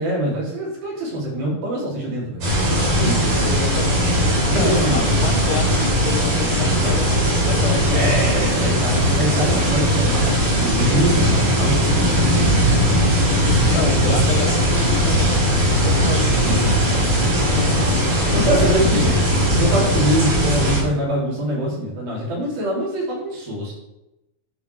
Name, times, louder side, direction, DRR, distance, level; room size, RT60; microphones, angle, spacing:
voice 1, 0.0-2.4 2.9-3.4 4.5-5.1 7.9-11.7 12.7-12.9 13.2-14.7 16.4-17.3 18.3-19.2 19.5-23.7, right 1 dB, 80° right, -5 dB, 5.0 m, -24 dB
sound 1, 2.4-20.8, equal, 60° right, 5.1 m, -18 dB
voice 2, 3.5-8.2 13.3-16.8 17.6-17.9 18.2-18.8 20.2-20.3, left 6 dB, 75° left, 5 dB, 2.0 m, -29 dB
12.0 x 5.0 x 4.6 m, 0.92 s
omnidirectional pair, 4.2 m